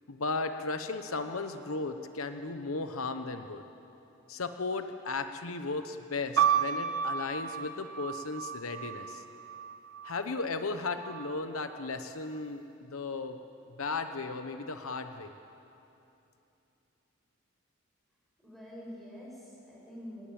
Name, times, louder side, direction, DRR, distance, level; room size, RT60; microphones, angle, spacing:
voice 1, 0.1-3.6 4.3-9.2 10.0-13.4 13.8-15.3, left 3 dB, 75° left, 8 dB, 1.0 m, -35 dB
sound 1, 6.4-10.2 11.0-11.7, right 8 dB, 75° right, 1.1 m, -32 dB
voice 2, 18.4-20.2, equal, ahead, -5 dB, 7.4 m, -46 dB
26.5 x 19.5 x 8.8 m, 2.9 s
head